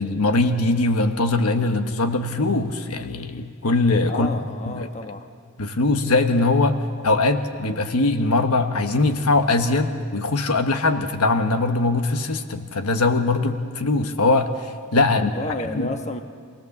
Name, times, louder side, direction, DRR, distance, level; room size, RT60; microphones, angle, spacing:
voice 1, 0.0-4.3 4.7-4.9 5.6-6.8 7.0-15.3 15.7-15.9, left 2 dB, 80° left, 7 dB, 1.2 m, -21 dB
voice 2, 4.1-5.3 15.1-16.2, left 2 dB, 30° left, 5 dB, 1.2 m, -31 dB
26.0 x 17.5 x 7.2 m, 2.1 s
head